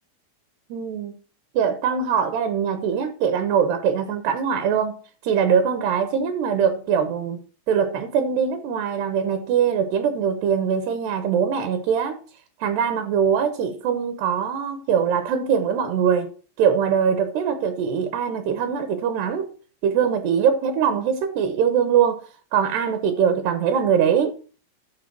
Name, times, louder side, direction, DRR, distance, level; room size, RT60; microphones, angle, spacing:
voice 1, 0.7-1.2 1.5-5.0 5.2-7.4 7.7-12.2 12.6-19.5 19.8-24.3, right 7 dB, 75° right, 2.9 m, -22 dB
11.5 x 4.7 x 6.0 m
omnidirectional pair, 5.1 m